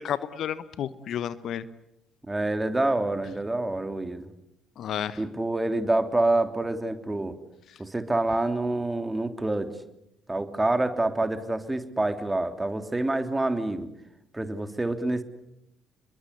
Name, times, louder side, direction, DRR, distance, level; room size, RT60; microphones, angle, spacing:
voice 1, 0.0-1.7 4.8-5.2, left 9 dB, 55° left, 16 dB, 1.1 m, -31 dB
voice 2, 2.3-4.3 5.2-7.4 7.8-9.7 10.3-13.9 14.3-15.2, right 2 dB, 15° right, 8 dB, 3.0 m, -27 dB
28.5 x 22.5 x 8.2 m, 0.84 s
figure-of-eight pair, 50°, 0 cm